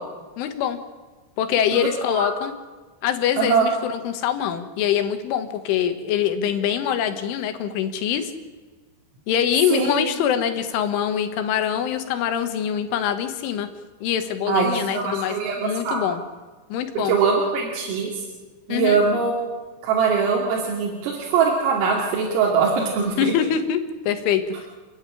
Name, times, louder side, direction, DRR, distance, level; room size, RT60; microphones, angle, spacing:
voice 1, 0.4-0.8 1.4-2.5 3.0-8.3 9.3-13.7 14.0-16.2 16.7-17.2 18.7-19.0 23.2-23.8 24.1-24.7, left 9 dB, 75° left, 8 dB, 3.7 m, -24 dB
voice 2, 3.4-3.7 9.7-9.9 14.5-16.0 17.1-18.3 18.7-19.5 19.8-23.3, right 5 dB, 85° right, -2 dB, 5.3 m, -22 dB
29.5 x 10.5 x 9.9 m, 1.3 s
omnidirectional pair, 5.8 m